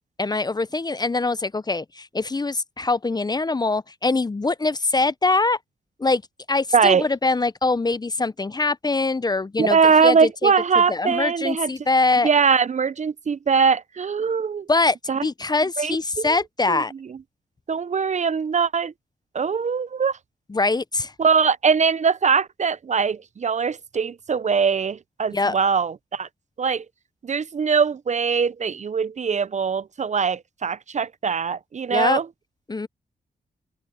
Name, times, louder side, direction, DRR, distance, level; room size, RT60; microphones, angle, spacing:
voice 1, 0.2-5.6 6.0-6.2 6.5-10.5 10.9-12.3 14.7-15.0 15.2-16.9 20.5-21.1 25.3-25.6 31.9-32.2 32.7-32.9, left 3 dB, 25° left, 0.6 m, -23 dB
voice 2, 6.7-7.0 9.6-11.7 12.2-14.7 15.1-15.3 15.8-16.4 16.7-16.8 17.7-18.9 19.3-20.2 21.2-26.3 26.6-26.8 27.2-32.2, right 5 dB, 45° right, 0.5 m, -21 dB
cardioid pair, 65°, 17 cm